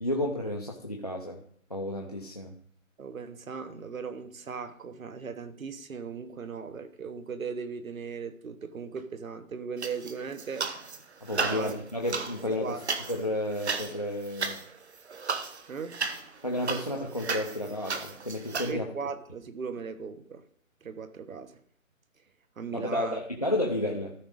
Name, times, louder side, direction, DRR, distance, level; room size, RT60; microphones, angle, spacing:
voice 1, 0.0-1.4 1.7-2.5 11.3-12.8 13.1-14.6 16.4-18.8 22.7-24.1, left 1 dB, 30° left, 0.6 m, -31 dB
voice 2, 3.0-10.7 11.3-11.7 12.4-12.8 15.7-16.0 18.6-20.4 20.8-21.6 22.6-23.2, right 5 dB, 75° right, 1.1 m, -38 dB
sound 1, 9.8-11.0 11.3-18.7, right 4 dB, 50° right, 1.0 m, -34 dB
13.0 x 5.1 x 5.0 m
hypercardioid pair, 175°, 41 cm